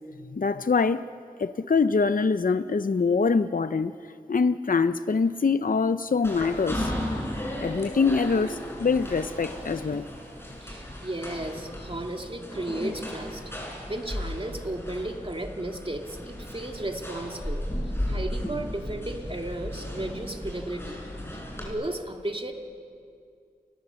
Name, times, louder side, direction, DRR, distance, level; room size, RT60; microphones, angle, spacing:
voice 1, 0.3-1.1 1.4-3.9 4.3-6.9 7.6-10.0, left 4 dB, 60° left, 12 dB, 0.6 m, -24 dB
sound 1, 6.2-21.7, left 1 dB, 15° left, 6.4 m, -35 dB
voice 2, 10.6-13.4 13.9-17.6 18.1-21.0 21.3-22.5, right 1 dB, 35° right, 3 dB, 2.3 m, -34 dB
29.5 x 21.0 x 7.0 m, 2.3 s
wide cardioid pair, 60°, 16 cm